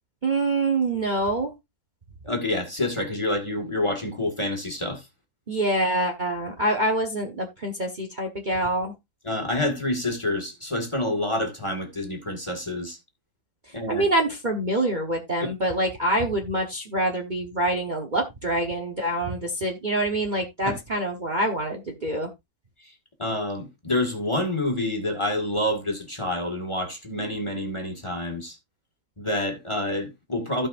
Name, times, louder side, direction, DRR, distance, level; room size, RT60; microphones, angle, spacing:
voice 1, 0.2-1.5 5.5-8.9 13.9-22.3, right 1 dB, 30° right, 1.2 m, -25 dB
voice 2, 2.2-5.0 9.2-13.0 13.7-14.0 20.6-20.8 23.2-28.6 29.2-30.7, left 1 dB, 20° left, 1.9 m, -28 dB
16.0 x 5.4 x 2.6 m
omnidirectional pair, 1.7 m